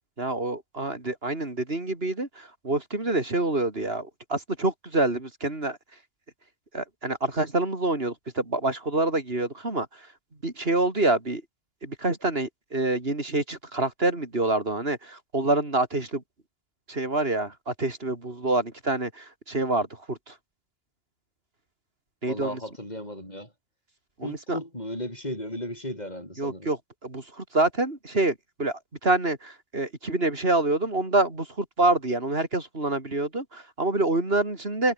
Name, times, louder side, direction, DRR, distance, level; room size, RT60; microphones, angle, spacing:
voice 1, 0.2-5.8 6.7-9.9 10.4-11.4 11.8-16.2 16.9-20.2 22.2-22.5 24.2-24.6 26.4-26.8 27.0-28.3 28.6-28.7 29.0-34.9, right 2 dB, 70° right, 4.2 m, -26 dB
voice 2, 22.3-23.5 24.2-26.7, left 1 dB, 40° left, 8.2 m, -35 dB
omnidirectional pair, 1.0 m